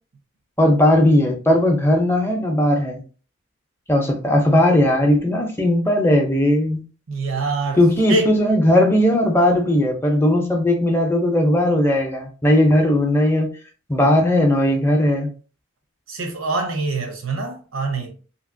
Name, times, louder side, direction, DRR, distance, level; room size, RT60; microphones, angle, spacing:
voice 1, 0.6-3.0 3.9-6.8 7.8-13.5 13.9-15.3, left 1 dB, 10° left, 0.5 m, -17 dB
voice 2, 7.1-7.8 8.1-8.3 16.1-18.1, right 3 dB, 75° right, 0.8 m, -24 dB
2.8 x 2.8 x 2.6 m
head